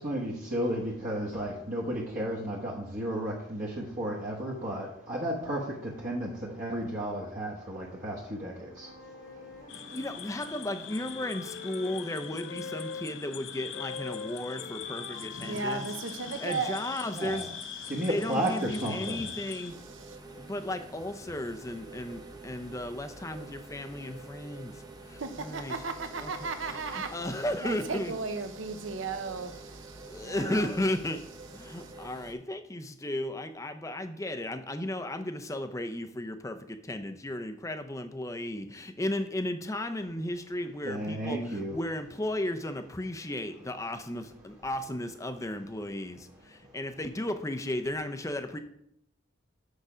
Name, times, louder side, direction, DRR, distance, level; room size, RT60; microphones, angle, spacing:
voice 1, 0.0-10.0 17.1-17.5 17.9-19.3 40.8-41.8 46.6-46.8, right 1 dB, 40° right, -4 dB, 1.1 m, -33 dB
Wind instrument woodwind instrument, 8.6-13.1 13.7-17.4, left 4 dB, 45° left, 1.2 m, -45 dB
sound 1, 9.7-19.7, left 8 dB, 65° left, 0.7 m, -42 dB
voice 2, 9.7-15.9 16.1-17.6 17.8-19.8 20.4-25.7 26.2-28.1 30.1-31.2 31.5-48.6, left 1 dB, 15° left, 7 dB, 0.5 m, -35 dB
voice 3, 15.4-16.8 25.2-27.1 27.6-29.8 30.2-30.7, right 4 dB, 70° right, 8 dB, 0.8 m, -35 dB
sound 2, 19.7-32.3, right 2 dB, 20° right, 0.7 m, -47 dB
6.8 x 6.5 x 5.0 m, 0.75 s
head